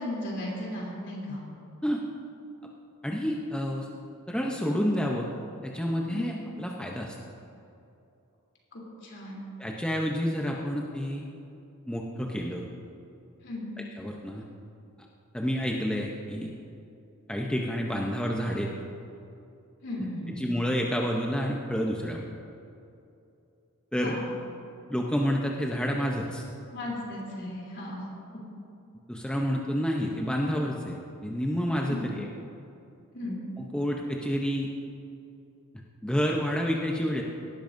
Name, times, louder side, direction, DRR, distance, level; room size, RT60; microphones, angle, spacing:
voice 1, 0.0-1.4 6.0-6.3 8.7-9.4 13.4-13.7 19.8-20.4 24.0-24.3 26.7-28.1 31.9-32.1 33.1-33.4, left 1 dB, 55° left, -3 dB, 3.2 m, -36 dB
voice 2, 3.0-3.9 4.3-5.3 5.6-7.2 9.6-11.2 11.9-12.7 13.9-14.4 15.3-16.5 17.3-18.7 20.3-22.2 23.9-24.2 24.9-26.4 29.1-31.0 31.2-32.3 33.6-34.7 35.7-37.2, equal, 5° left, -1 dB, 0.7 m, -29 dB
18.0 x 12.0 x 2.6 m, 2.7 s
head